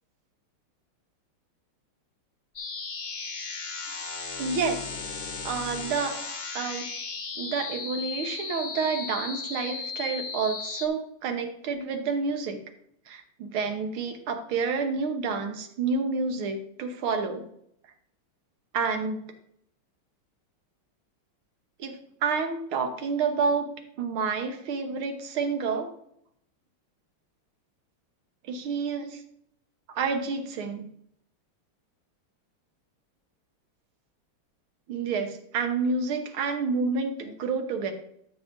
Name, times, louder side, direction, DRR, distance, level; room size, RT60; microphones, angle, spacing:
sound 1, 2.6-10.9, left 4 dB, 40° left, 0.9 m, -36 dB
voice 1, 4.4-4.9 5.4-6.2 6.6-6.9 7.4-12.6 13.1-17.5 18.7-19.2 21.8-23.7 24.0-25.9 28.5-29.2 29.9-30.9 34.9-37.9, right 5 dB, 80° right, 6 dB, 1.9 m, -29 dB
12.0 x 7.0 x 2.6 m, 0.70 s
omnidirectional pair, 2.3 m